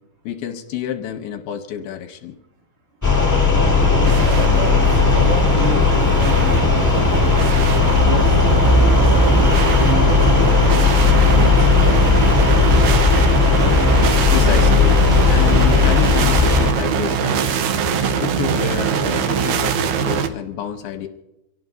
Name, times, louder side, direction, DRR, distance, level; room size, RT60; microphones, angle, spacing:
voice 1, 0.2-2.4 14.3-17.6 18.0-21.1, left 9 dB, 75° left, 6 dB, 2.7 m, -29 dB
sound 1, 3.0-16.7, left 5 dB, 10° left, 0.7 m, -15 dB
voice 2, 3.5-7.5 8.0-8.4 9.0-10.8 11.3-12.8, right 2 dB, 50° right, 0 dB, 3.6 m, -30 dB
sound 2, 3.6-20.3, right 7 dB, 80° right, 1.7 m, -22 dB
26.0 x 17.5 x 2.7 m, 0.90 s
omnidirectional pair, 4.7 m